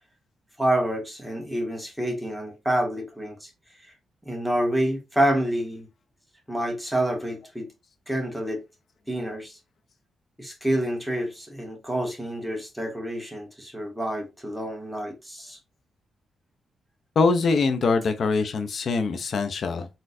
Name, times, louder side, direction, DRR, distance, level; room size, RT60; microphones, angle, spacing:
voice 1, 0.6-3.5 3.8-3.9 4.3-5.9 6.5-7.7 8.1-8.6 9.1-9.6 10.4-15.6, right 1 dB, 5° right, 2.0 m, -28 dB
voice 2, 17.2-19.9, left 4 dB, 55° left, 0.7 m, -23 dB
4.2 x 3.8 x 2.7 m
cardioid pair, 100°, 0 cm